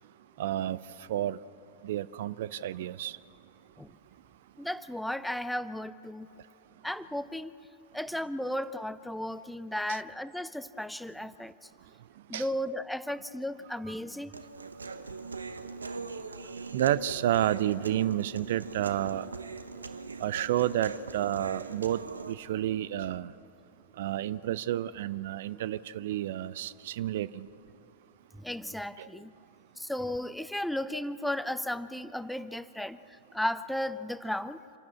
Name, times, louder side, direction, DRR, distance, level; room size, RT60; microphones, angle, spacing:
voice 1, 0.4-0.8 1.1-1.4 1.8-3.2 9.9-10.0 12.3-12.5 16.7-19.3 20.2-22.0 22.3-23.3 24.0-27.5 29.0-29.1, right 12 dB, 55° right, 0.4 m, -30 dB
voice 2, 4.6-6.3 6.8-7.5 7.9-11.7 12.3-14.4 25.5-25.6 28.3-29.3 29.8-34.6, left 1 dB, ahead, 0.6 m, -35 dB
Human voice, 14.3-22.3, right 4 dB, 75° right, 0.9 m, -41 dB
27.0 x 12.0 x 8.5 m
figure-of-eight pair, 90°, 0 cm